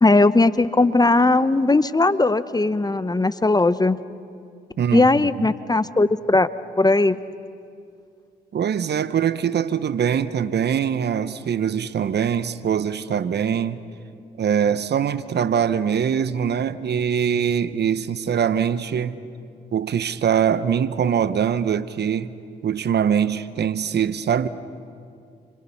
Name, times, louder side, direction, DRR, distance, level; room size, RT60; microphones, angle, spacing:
voice 1, 0.0-4.0 4.9-6.5 6.8-7.2, left 2 dB, 20° left, 1.0 m, -18 dB
voice 2, 4.8-5.3 8.5-13.8 14.4-19.2 19.7-22.3 22.6-24.5, right 8 dB, 55° right, 1.0 m, -23 dB
28.5 x 26.5 x 5.8 m
hypercardioid pair, 50°, 21 cm